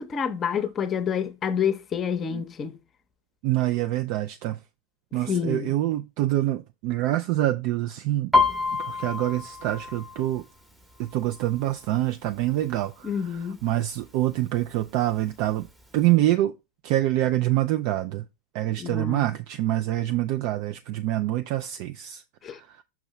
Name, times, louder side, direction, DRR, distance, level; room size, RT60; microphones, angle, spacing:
voice 1, 0.0-2.8 5.2-5.7 13.0-13.6 18.8-19.3 22.4-22.6, left 7 dB, 30° left, 0.7 m, -28 dB
voice 2, 3.4-4.6 5.1-8.3 8.8-10.4 11.0-12.9 13.6-15.7 15.9-16.5 16.8-18.2 18.5-22.2, right 15 dB, 50° right, 0.3 m, -25 dB
Piano, 8.3-12.0 12.3-12.7 13.1-13.7 14.3-14.4 14.6-15.7 16.0-16.1, left 3 dB, 10° right, 0.9 m, -27 dB
6.0 x 5.4 x 3.0 m
figure-of-eight pair, 90°, 0 cm